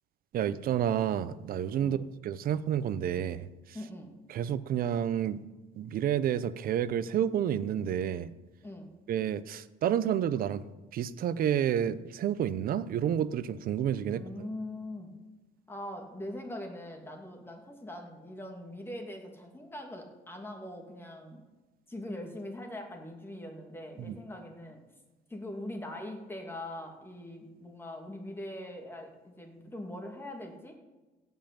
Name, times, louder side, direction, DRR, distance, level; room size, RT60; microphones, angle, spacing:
voice 1, 0.3-3.5 4.3-5.4 5.8-8.3 9.1-10.6 10.9-14.2 24.1-24.2, right 9 dB, 60° right, 15 dB, 0.7 m, -30 dB
voice 2, 3.7-4.1 8.6-8.9 14.1-15.1 15.7-21.4 21.9-24.8 25.3-30.7, left 1 dB, 15° left, 2 dB, 2.6 m, -42 dB
16.5 x 5.6 x 8.8 m, 1.2 s
cardioid pair, 110°, 17 cm